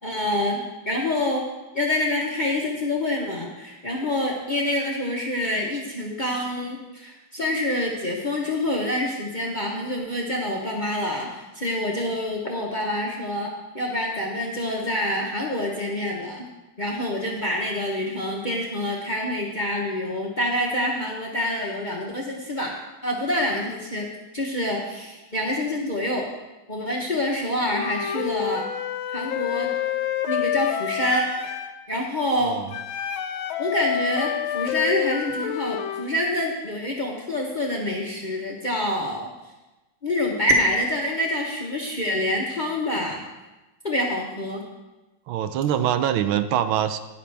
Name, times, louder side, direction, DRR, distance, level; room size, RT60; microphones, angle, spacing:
voice 1, 0.0-1.5 1.7-16.5 16.8-22.7 23.0-24.1 24.3-26.3 26.7-28.6 29.1-29.7 30.3-31.3 31.9-32.5 33.6-39.3 40.0-43.2 43.8-44.6, left 1 dB, 30° left, -1 dB, 0.9 m, -26 dB
Wind instrument woodwind instrument, 27.7-31.8 32.7-36.1, left 10 dB, 80° left, 1.4 m, -28 dB
voice 2, 32.3-32.7 45.3-47.0, right 10 dB, 80° right, 11 dB, 1.4 m, -24 dB
12.5 x 9.9 x 3.4 m, 1.1 s
omnidirectional pair, 2.3 m